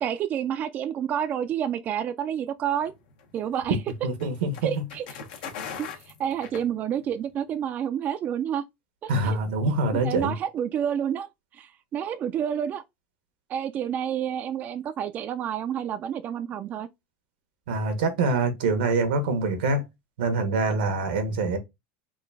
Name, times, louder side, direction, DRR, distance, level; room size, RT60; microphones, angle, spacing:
voice 1, 0.0-2.9 3.3-3.8 4.6-5.0 6.2-8.6 9.0-9.4 10.0-11.3 11.6-12.8 13.5-16.9, right 9 dB, 35° right, 0.3 m, -29 dB
sound 1, 2.8-7.2, left 7 dB, 80° left, 1.0 m, -41 dB
voice 2, 4.0-4.8 9.1-10.3 17.7-19.8 20.2-21.6, right 3 dB, 90° right, 1.2 m, -25 dB
3.8 x 2.4 x 3.5 m
supercardioid pair, 130°, 5 cm